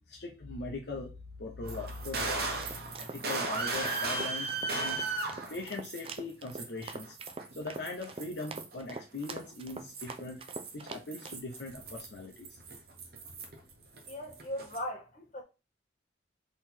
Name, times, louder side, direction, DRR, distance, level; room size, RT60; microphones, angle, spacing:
voice 1, 0.1-2.6 3.0-5.0 5.5-7.2 7.6-10.4 10.7-12.6, left 2 dB, 65° left, 0.8 m, -40 dB
sound 1, 1.6-6.2 6.5-8.7 9.2-13.7 14.0-14.8, right 3 dB, 55° right, 0.9 m, -36 dB
sound 2, 2.0-11.4, right 3 dB, 30° right, 0.4 m, -45 dB
voice 2, 14.0-15.4, left 1 dB, 40° left, 1.3 m, -39 dB
4.0 x 3.0 x 4.4 m
head